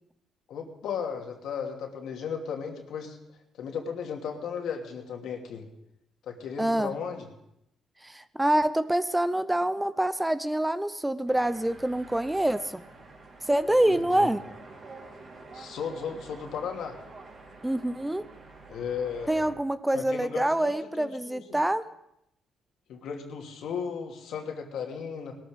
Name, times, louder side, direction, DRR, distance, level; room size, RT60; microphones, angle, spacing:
voice 1, 0.5-3.2 3.5-5.7 6.3-7.3 13.7-14.3 15.5-17.0 18.7-19.5 19.9-21.6 22.9-25.4, left 6 dB, 75° left, 2 dB, 2.7 m, -35 dB
voice 2, 6.6-6.9 8.0-12.8 13.5-14.4 17.6-18.2 19.3-21.8, right 1 dB, 10° right, 13 dB, 0.7 m, -26 dB
sound 1, 11.3-19.5, right 3 dB, 50° right, 4.8 m, -48 dB
19.5 x 13.5 x 5.2 m, 0.81 s
cardioid pair, 90°, 0 cm